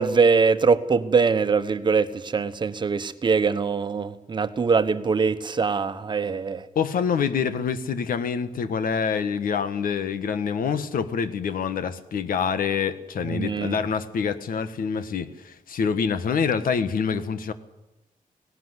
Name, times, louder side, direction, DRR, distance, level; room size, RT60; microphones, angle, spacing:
voice 1, 0.0-6.7 13.3-13.8, right 5 dB, 35° right, 1.1 m, -22 dB
voice 2, 6.7-17.5, left 6 dB, 85° left, 1.5 m, -26 dB
18.5 x 18.0 x 8.0 m
wide cardioid pair, 180°, 14 cm